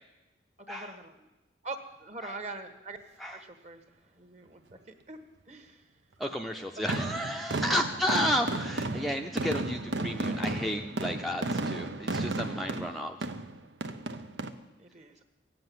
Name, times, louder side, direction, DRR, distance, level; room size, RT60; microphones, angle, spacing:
voice 1, 0.7-1.3 1.6-3.0 3.3-4.8 5.1-5.2 5.5-5.8 14.8-15.2, right 3 dB, 40° right, 6 dB, 1.4 m, -43 dB
voice 2, 6.2-13.2, equal, ahead, 2 dB, 0.5 m, -32 dB
sound 1, 6.9-14.5, right 2 dB, 85° right, 0.9 m, -33 dB
16.5 x 7.7 x 9.4 m, 1.0 s
head